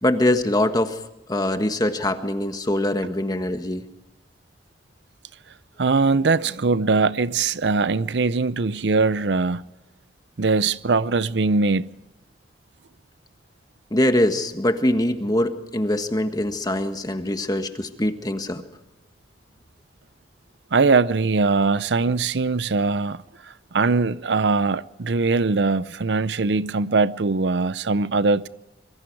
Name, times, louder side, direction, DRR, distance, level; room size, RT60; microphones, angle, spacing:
voice 1, 0.0-1.0 1.3-3.8 13.9-18.6, left 1 dB, 20° left, 1.5 m, -23 dB
voice 2, 5.8-9.7 10.4-11.9 20.7-23.2 23.7-28.5, right 4 dB, 80° right, 0.6 m, -21 dB
25.0 x 23.0 x 4.7 m
head